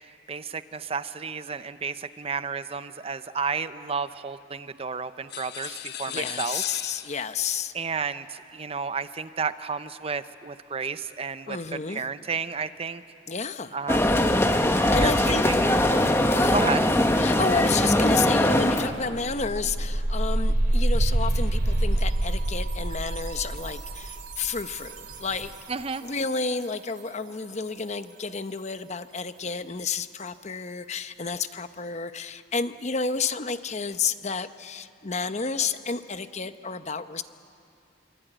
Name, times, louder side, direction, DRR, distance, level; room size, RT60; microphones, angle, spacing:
voice 1, 0.3-6.6 7.7-13.0 13.7-14.2 15.0-15.7 16.5-16.8 25.7-26.1, right 5 dB, 30° right, 12 dB, 0.6 m, -32 dB
sound 1, 5.3-7.5, left 9 dB, 60° left, 1.3 m, -38 dB
voice 2, 5.7-7.7 11.5-12.0 13.3-13.8 14.9-15.6 16.3-16.6 17.2-25.5 26.0-37.2, left 5 dB, 35° left, 11 dB, 0.8 m, -31 dB
sound 2, 13.9-18.9, left 1 dB, 15° left, 1.2 m, -21 dB
sound 3, 19.0-25.7, right 1 dB, 60° right, 3.3 m, -26 dB
26.5 x 23.0 x 9.1 m, 2.6 s
head